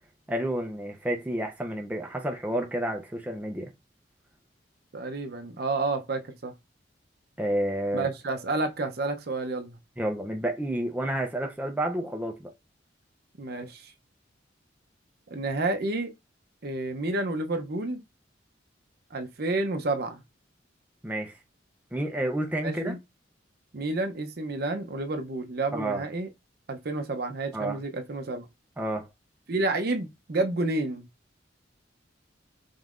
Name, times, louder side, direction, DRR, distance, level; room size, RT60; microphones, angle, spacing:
voice 1, 0.3-3.7 7.4-8.1 10.0-12.5 21.0-21.4 21.9-23.0 25.7-26.0 27.5-27.8 28.8-29.1, right 1 dB, 10° right, 0.5 m, -30 dB
voice 2, 4.9-6.5 7.9-9.8 13.4-13.9 15.3-16.1 16.6-18.0 19.1-20.2 22.6-23.0 23.7-26.3 26.7-28.5 29.5-31.1, right 2 dB, 55° right, 0.7 m, -30 dB
5.3 x 3.1 x 2.5 m
head